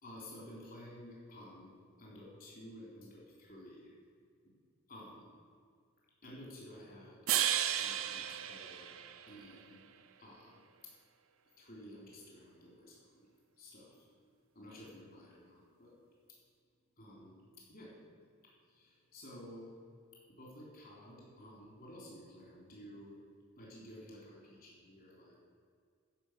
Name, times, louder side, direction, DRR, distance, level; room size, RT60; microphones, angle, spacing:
voice 1, 0.0-1.7 2.0-3.9 4.9-5.3 6.2-7.2 7.8-8.9 9.3-9.9 10.2-10.6 11.6-13.3 13.6-14.3 14.6-15.9 17.0-17.9 18.7-19.7 20.4-23.2 23.6-25.4, left 1 dB, 45° left, -4 dB, 3.8 m, -52 dB
sound 1, 7.3-9.6, right 11 dB, 80° right, 0.7 m, -34 dB
13.5 x 5.6 x 8.1 m, 2.1 s
head